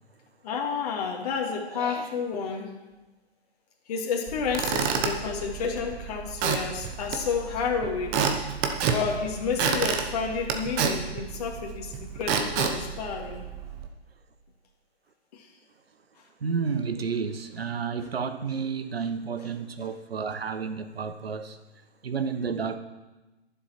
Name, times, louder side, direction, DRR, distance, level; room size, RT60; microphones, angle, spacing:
voice 1, 0.4-2.8 3.9-8.4 8.8-13.5 15.3-15.5, left 6 dB, 35° left, 0 dB, 2.1 m, -30 dB
voice 2, 1.7-2.1 16.4-21.6 22.0-22.8, right 5 dB, 65° right, 9 dB, 1.2 m, -31 dB
Squeak / Wood, 4.3-13.9, right 6 dB, 10° right, 0.5 m, -30 dB
21.5 x 7.3 x 4.4 m, 1.1 s
figure-of-eight pair, 130°, 33 cm